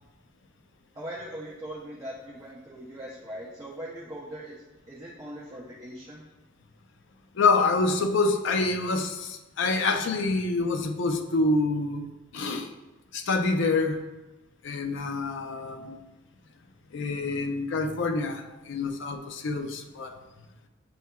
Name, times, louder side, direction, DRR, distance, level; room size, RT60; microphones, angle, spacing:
voice 1, 0.9-4.5 4.9-6.2, right 1 dB, 20° right, -6 dB, 0.6 m, -40 dB
voice 2, 7.3-12.7 13.1-14.0 14.6-16.0 16.9-20.1, left 3 dB, 65° left, 5 dB, 0.4 m, -26 dB
6.9 x 2.7 x 2.2 m, 1.1 s
head